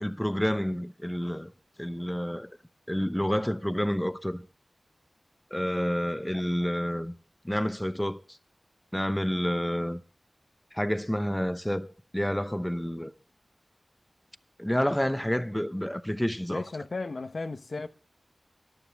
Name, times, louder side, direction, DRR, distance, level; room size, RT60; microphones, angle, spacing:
voice 1, 0.0-1.5 1.8-2.5 2.9-4.4 5.5-7.1 7.4-8.2 8.9-10.0 10.7-13.1 14.6-16.7, equal, 10° left, 0.8 m, -29 dB
voice 2, 16.5-17.9, left 3 dB, 75° left, 0.8 m, -35 dB
19.5 x 12.0 x 3.5 m
wide cardioid pair, 75°, 0 cm